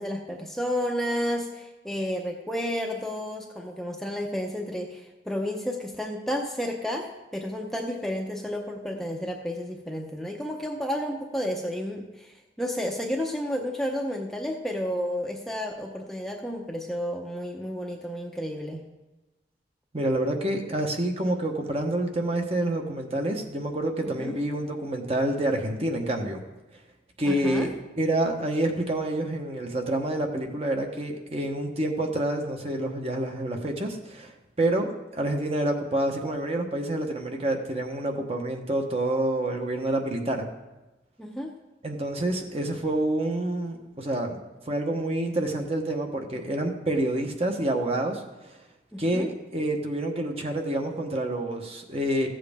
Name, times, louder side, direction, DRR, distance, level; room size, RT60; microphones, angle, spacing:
voice 1, 0.0-18.8 24.0-24.3 27.2-27.7 41.2-41.5 48.9-49.3, equal, ahead, 1 dB, 0.7 m, -31 dB
voice 2, 19.9-26.4 27.2-27.7 28.0-34.3 34.6-40.5 41.8-44.4 44.6-48.6 49.0-52.3, right 1 dB, 35° right, 3 dB, 1.0 m, -28 dB
14.5 x 7.6 x 3.5 m, 1.1 s
head